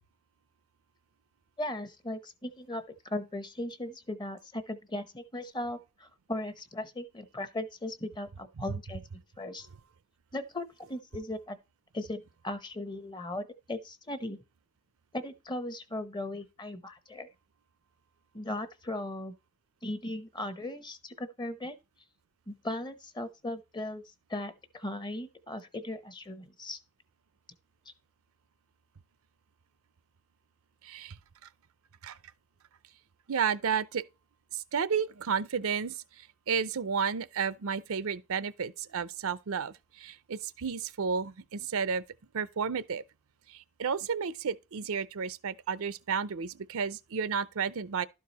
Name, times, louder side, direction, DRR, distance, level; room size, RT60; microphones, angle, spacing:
voice 1, 1.6-9.0 9.4-9.7 10.3-11.6 11.9-14.4 15.1-17.3 18.3-19.3 19.8-21.7 22.5-24.0 24.3-26.8, left 1 dB, 20° left, 0.8 m, -37 dB
voice 2, 30.8-31.2 32.0-32.2 33.3-34.0 34.5-42.0 42.3-43.0 43.5-48.1, right 6 dB, 65° right, 0.6 m, -32 dB
12.0 x 4.7 x 4.1 m
head